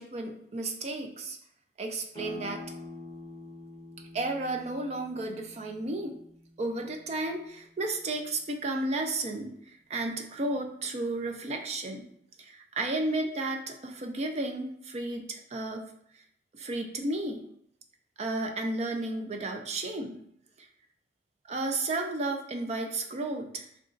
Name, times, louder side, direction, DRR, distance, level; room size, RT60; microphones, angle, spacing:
voice 1, 0.0-1.4 1.8-2.6 4.1-6.2 6.6-12.1 12.4-15.9 16.1-16.2 16.5-17.4 18.2-20.2 20.6-20.7 21.5-23.7, right 2 dB, 40° right, 3 dB, 0.3 m, -33 dB
sound 1, 2.1-7.5, left 3 dB, 20° left, 0.6 m, -46 dB
3.8 x 2.3 x 2.4 m, 0.71 s
head